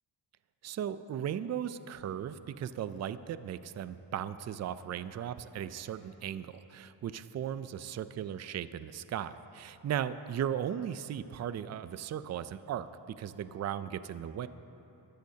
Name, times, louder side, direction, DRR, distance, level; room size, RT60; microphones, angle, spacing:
voice 1, 0.6-14.5, right 9 dB, 40° right, 13 dB, 0.4 m, -37 dB
24.0 x 13.0 x 2.8 m, 3.0 s
cardioid pair, 115°, 43 cm